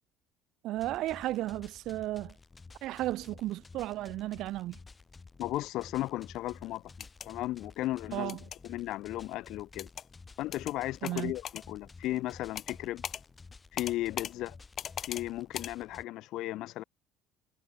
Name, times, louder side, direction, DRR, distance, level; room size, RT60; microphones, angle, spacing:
voice 1, 0.6-2.3 2.8-4.8 8.1-8.4 11.0-11.3, right 15 dB, 55° right, 2.5 m, -34 dB
sound 1, 0.7-16.0, left 4 dB, 15° left, 2.4 m, -53 dB
voice 2, 5.4-6.9 7.2-8.4 8.6-9.9 10.4-13.0 13.7-14.6 15.0-16.8, left 16 dB, 55° left, 2.0 m, -35 dB
sound 2, 6.9-7.3 8.3-8.6 9.8-10.1 10.5-10.7 11.0-11.6 12.6-12.8 13.0-13.2 13.8-14.3 14.8-15.2 15.5-15.7, left 9 dB, 35° left, 1.0 m, -39 dB
cardioid pair, 165°, 0 cm